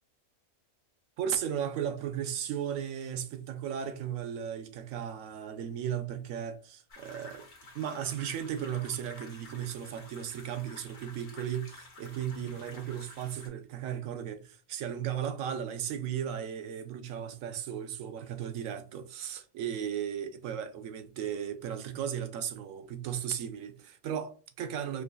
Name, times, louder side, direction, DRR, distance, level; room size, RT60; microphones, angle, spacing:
voice 1, 1.2-7.5 7.7-25.0, right 9 dB, 90° right, 1.0 m, -36 dB
sound 1, 6.9-13.5, left 3 dB, 40° left, 1.0 m, -52 dB
4.7 x 2.3 x 2.4 m
omnidirectional pair, 1.3 m